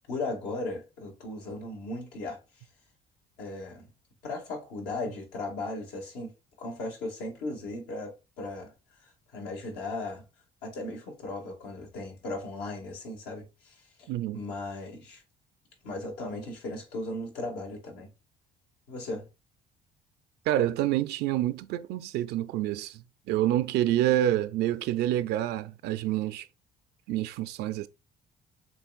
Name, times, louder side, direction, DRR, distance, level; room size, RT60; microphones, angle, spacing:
voice 1, 0.1-2.4 3.4-3.9 4.2-6.3 6.6-8.7 9.3-10.2 10.6-14.1 14.3-15.2 15.8-18.1 18.9-19.3, left 2 dB, 90° left, 2.0 m, -37 dB
voice 2, 14.1-14.4 20.5-26.5 27.1-27.9, right 13 dB, 80° right, 0.4 m, -27 dB
7.0 x 3.1 x 2.4 m
cardioid pair, 110°, 17 cm